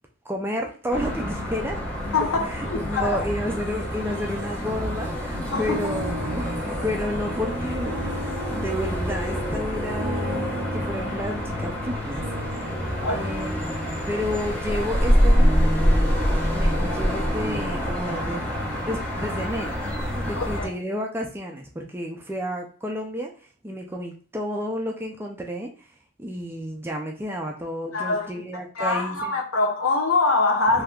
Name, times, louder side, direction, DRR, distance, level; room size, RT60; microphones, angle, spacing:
voice 1, 0.3-1.8 2.5-8.1 8.5-12.7 13.0-13.8 14.1-15.7 16.5-18.4 18.8-19.8 20.1-23.3 23.6-25.7 26.2-29.3 30.7-30.8, equal, 10° right, 0.4 m, -31 dB
sound 1, 0.9-20.7, equal, 5° left, 0.9 m, -26 dB
voice 2, 2.1-3.2 5.5-5.8 13.0-13.4 20.3-20.7 27.9-30.8, left 3 dB, 70° left, 0.7 m, -24 dB
sound 2, 5.7-14.4, right 2 dB, 80° right, 0.4 m, -39 dB
3.5 x 2.7 x 2.3 m
head